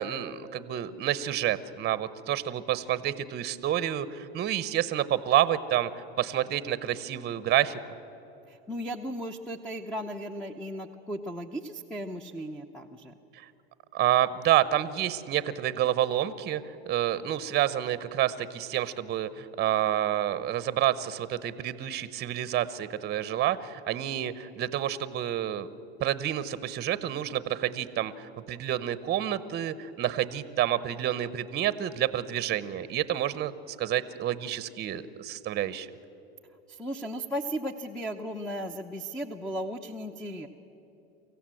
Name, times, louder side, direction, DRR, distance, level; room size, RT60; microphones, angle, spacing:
voice 1, 0.0-7.8 13.3-13.5 13.9-25.7 26.0-35.9, right 12 dB, 30° right, 16 dB, 0.9 m, -29 dB
voice 2, 8.5-13.2 36.7-40.5, equal, ahead, 6 dB, 0.8 m, -36 dB
24.5 x 15.5 x 7.7 m, 3.0 s
supercardioid pair, 115°, 32 cm